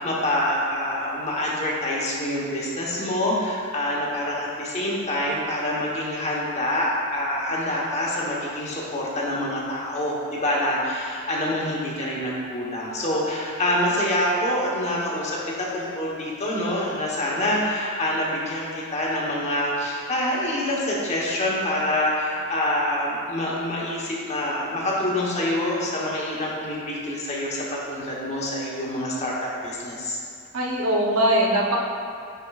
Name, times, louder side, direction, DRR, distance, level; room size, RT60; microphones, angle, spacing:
voice 1, 0.0-30.2, left 1 dB, 30° left, -4 dB, 1.0 m, -26 dB
voice 2, 30.5-31.8, right 1 dB, 75° right, -2 dB, 0.9 m, -21 dB
10.0 x 4.6 x 2.4 m, 2.5 s
head